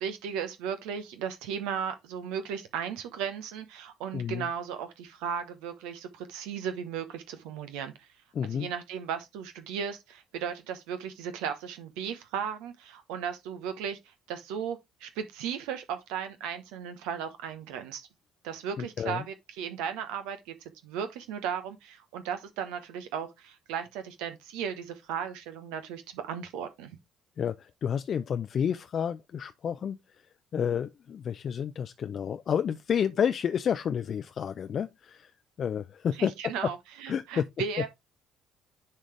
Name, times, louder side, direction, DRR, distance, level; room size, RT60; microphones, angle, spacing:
voice 1, 0.0-8.1 8.5-18.1 18.4-20.5 20.8-26.9 36.2-37.9, right 7 dB, 65° right, 0.9 m, -36 dB
voice 2, 4.1-4.4 8.3-8.7 18.8-19.2 27.4-30.0 30.5-35.3 35.6-36.3 37.1-37.5, left 8 dB, 45° left, 0.5 m, -30 dB
10.0 x 4.9 x 3.3 m
figure-of-eight pair, 50°, 0 cm